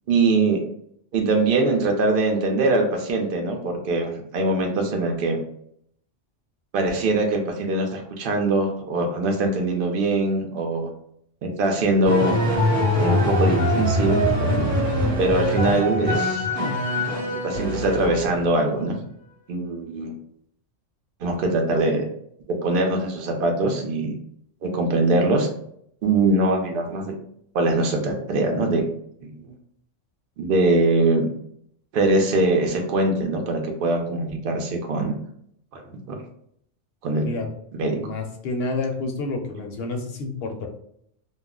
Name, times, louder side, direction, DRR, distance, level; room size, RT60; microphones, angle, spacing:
voice 1, 0.1-0.6 1.1-5.4 6.7-10.9 11.4-12.4 13.0-14.8 15.2-16.5 17.3-19.0 19.5-20.1 21.2-22.0 22.5-24.1 24.6-25.5 26.0-27.1 27.5-28.8 29.2-29.5 30.4-31.3 31.9-35.1 35.7-35.8 36.1-36.2 37.0-37.3 37.8-38.0, right 2 dB, 55° right, 2 dB, 0.7 m, -22 dB
sound 1, 12.1-18.5, left 1 dB, 25° right, 0.9 m, -23 dB
voice 2, 38.0-40.7, left 3 dB, 65° left, 3 dB, 0.8 m, -29 dB
2.3 x 2.0 x 3.6 m, 0.68 s
omnidirectional pair, 1.2 m